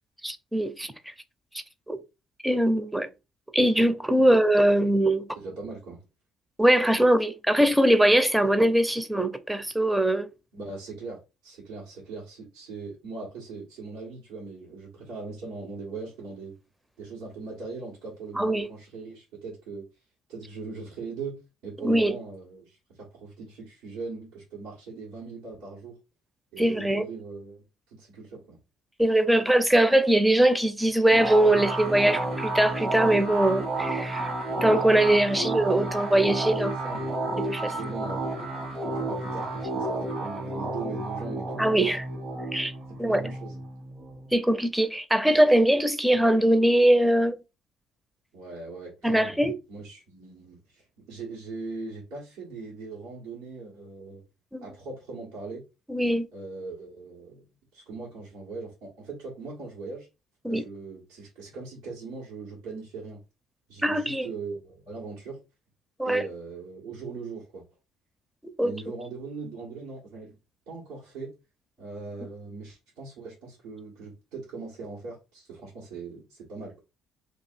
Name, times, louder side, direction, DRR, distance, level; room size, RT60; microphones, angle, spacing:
voice 1, 0.2-1.1 1.9-2.0 2.4-3.1 3.5-5.3 6.6-10.3 18.4-18.7 21.8-22.1 26.6-27.0 29.0-34.3 34.6-36.8 37.5-37.7 41.6-42.0 42.5-42.7 43.0-43.2 44.3-47.4 49.0-49.6 54.5-54.6 55.9-56.3 60.4-60.6 63.8-64.3 66.0-66.2 68.6-68.7, right 1 dB, 10° right, 0.7 m, -22 dB
voice 2, 5.3-6.0 10.5-16.5 17.0-19.8 20.3-26.0 26.5-28.6 35.3-35.5 36.8-37.1 37.7-38.2 38.7-42.0 42.9-43.6 48.3-49.4 49.7-54.2 54.6-55.6 56.3-57.4 57.7-60.1 60.5-63.2 63.7-65.4 66.0-67.6 68.6-70.4 70.7-71.3 71.8-76.8, right 4 dB, 80° right, 1.7 m, -40 dB
sound 1, 31.1-44.3, right 2 dB, 55° right, 1.4 m, -31 dB
2.9 x 2.6 x 4.4 m
hypercardioid pair, 60°, 0 cm